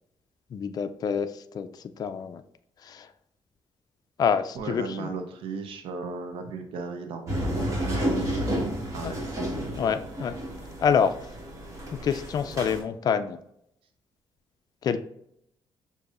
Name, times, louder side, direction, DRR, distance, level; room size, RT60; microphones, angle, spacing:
voice 1, 0.5-1.7 2.0-2.4 2.9-3.1 4.2-5.1 9.0-9.1 9.8-10.3 10.8-11.1 11.9-13.4 14.8-15.0, left 7 dB, 45° left, 9 dB, 0.3 m, -26 dB
voice 2, 4.5-9.4, right 4 dB, 85° right, 5 dB, 0.6 m, -36 dB
sound 1, 7.3-12.8, equal, 35° right, 1.7 m, -31 dB
6.4 x 2.6 x 2.5 m, 0.73 s
cardioid pair, 105°, 9 cm